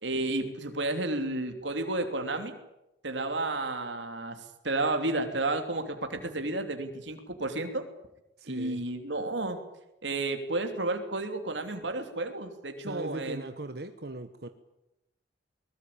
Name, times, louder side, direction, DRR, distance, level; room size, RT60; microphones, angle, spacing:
voice 1, 0.0-2.6 3.0-4.4 4.6-7.9 8.4-9.6 10.0-13.5, right 2 dB, 80° right, 5 dB, 3.1 m, -31 dB
voice 2, 8.4-8.8 12.8-14.5, right 2 dB, 60° right, 8 dB, 1.3 m, -39 dB
23.0 x 20.5 x 8.7 m, 0.90 s
head